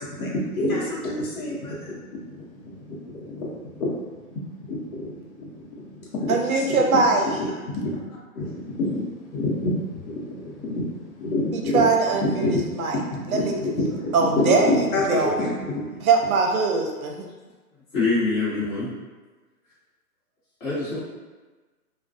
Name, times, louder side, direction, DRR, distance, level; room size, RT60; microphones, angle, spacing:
voice 1, 0.0-8.0 8.3-11.8 12.2-16.0, left 1 dB, 70° left, -4 dB, 0.9 m, -28 dB
voice 2, 6.3-7.2 11.7-13.0 13.3-13.5 14.1-14.7 15.1-15.3 16.0-17.3, right 4 dB, 70° right, 2 dB, 0.6 m, -21 dB
voice 3, 17.9-18.9 20.6-21.0, left 3 dB, 35° left, -10 dB, 1.2 m, -24 dB
2.3 x 2.3 x 2.5 m, 1.3 s
hypercardioid pair, 160°, 45 cm